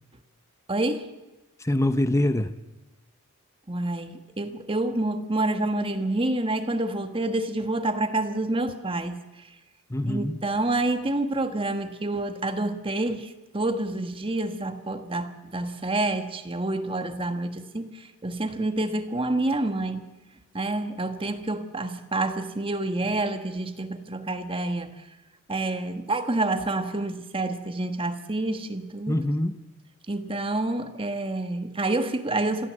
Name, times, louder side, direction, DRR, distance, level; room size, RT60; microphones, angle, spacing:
voice 1, 0.7-1.1 3.7-9.2 10.0-20.0 20.5-24.9 25.5-29.2 30.1-32.7, right 2 dB, 25° right, 1.4 m, -28 dB
voice 2, 1.6-2.5 9.9-10.4 29.1-29.6, left 1 dB, 15° left, 0.7 m, -24 dB
27.0 x 14.5 x 7.6 m
head